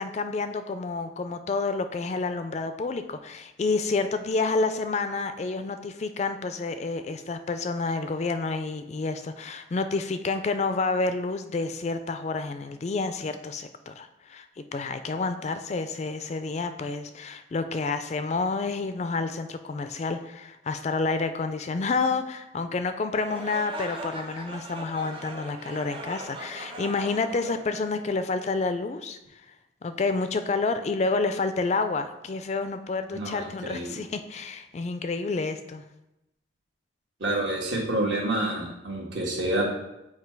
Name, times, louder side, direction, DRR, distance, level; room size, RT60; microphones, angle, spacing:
voice 1, 0.0-29.2 29.8-35.8, left 3 dB, 35° left, 9 dB, 0.3 m, -29 dB
sound 1, 23.2-28.4, right 2 dB, 25° right, 0.6 m, -40 dB
voice 2, 33.1-34.0 37.2-39.6, right 1 dB, 70° right, -2 dB, 1.5 m, -28 dB
8.0 x 2.9 x 4.5 m, 0.92 s
head